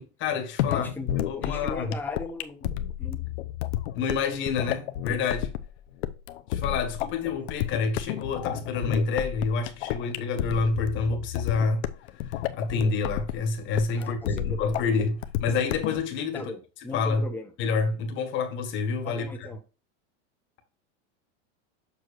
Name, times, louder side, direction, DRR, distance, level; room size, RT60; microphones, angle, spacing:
voice 1, 0.0-1.9 3.9-5.5 6.5-11.8 12.2-16.5 16.9-17.2 17.6-19.3, left 4 dB, 30° left, 1.6 m, -28 dB
sound 1, 0.6-16.0, left 12 dB, 65° left, 0.8 m, -31 dB
voice 2, 0.7-2.7 3.0-3.2 7.4-7.5 13.9-14.8 16.3-17.5 19.0-19.6, left 3 dB, 5° left, 0.8 m, -39 dB
7.2 x 5.9 x 2.6 m
supercardioid pair, 155°, 36 cm